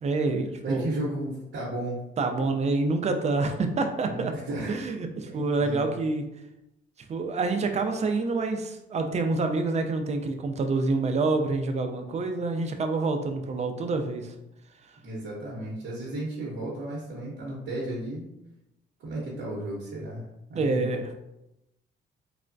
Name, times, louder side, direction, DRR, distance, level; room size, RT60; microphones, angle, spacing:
voice 1, 0.0-0.8 2.2-4.3 4.7-6.2 7.1-14.3 20.6-21.0, right 3 dB, 35° right, 5 dB, 0.4 m, -27 dB
voice 2, 0.6-2.0 4.0-4.8 5.2-5.9 15.0-18.3 19.0-20.9, right 1 dB, 70° right, -6 dB, 0.8 m, -34 dB
3.3 x 2.1 x 2.5 m, 0.88 s
cardioid pair, 90°, 20 cm